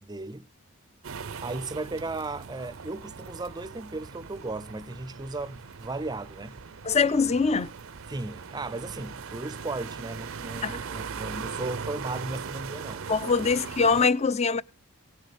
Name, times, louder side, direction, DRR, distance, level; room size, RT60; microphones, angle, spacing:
voice 1, 0.0-0.5 1.4-6.6 8.1-13.5, right 2 dB, 20° right, 0.5 m, -36 dB
sound 1, 1.0-14.1, right 5 dB, 65° right, 0.6 m, -40 dB
voice 2, 6.8-7.7 10.6-10.8 13.1-14.6, left 4 dB, 30° left, 0.5 m, -23 dB
17.5 x 6.6 x 5.1 m
head